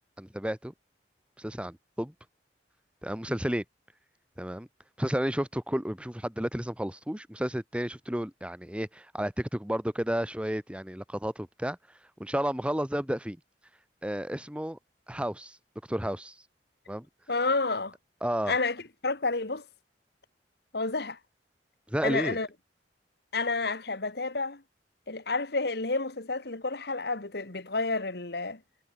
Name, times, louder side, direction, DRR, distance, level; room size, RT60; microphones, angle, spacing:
voice 1, 0.2-0.7 1.4-2.1 3.0-3.6 4.4-4.7 5.0-11.8 12.2-13.4 14.0-14.8 15.1-15.6 15.9-16.3 16.9-17.0 18.2-18.5 21.9-22.4, equal, 5° right, 1.6 m, -32 dB
voice 2, 17.3-17.9 18.5-19.6 20.7-21.2 22.0-22.5 23.3-24.6 25.1-28.6, left 3 dB, 65° left, 2.0 m, -30 dB
head